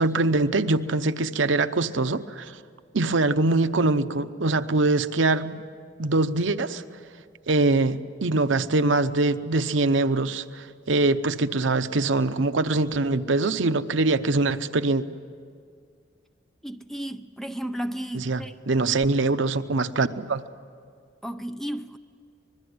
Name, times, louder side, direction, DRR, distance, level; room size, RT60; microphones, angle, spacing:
voice 1, 0.0-2.5 2.9-5.6 6.0-6.8 7.5-15.0 18.1-20.4, right 2 dB, 75° right, 0.8 m, -23 dB
voice 2, 16.6-18.5 21.2-22.0, equal, ahead, 0.6 m, -33 dB
25.0 x 21.0 x 9.5 m
head